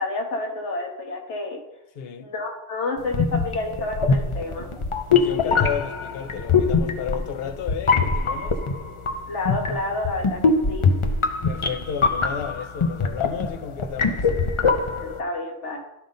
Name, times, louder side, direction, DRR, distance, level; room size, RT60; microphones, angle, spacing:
voice 1, 0.0-1.6 2.2-4.7 9.3-10.9 15.0-15.8, left 2 dB, 75° left, 1.8 m, -29 dB
voice 2, 2.0-2.3 5.1-8.6 11.4-14.3, left 7 dB, 60° left, 0.8 m, -32 dB
sound 1, 3.1-15.2, left 4 dB, 35° left, 0.5 m, -23 dB
12.0 x 5.4 x 3.8 m
omnidirectional pair, 1.2 m